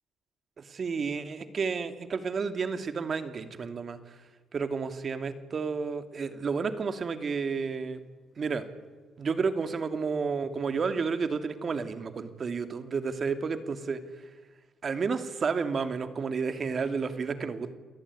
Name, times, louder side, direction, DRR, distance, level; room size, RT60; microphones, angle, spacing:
voice 1, 0.6-4.0 4.5-8.0 8.4-8.6 9.2-14.0 14.8-17.7, right 5 dB, 45° right, 10 dB, 2.5 m, -31 dB
28.5 x 19.0 x 9.7 m, 1.4 s
cardioid pair, 90°, 0 cm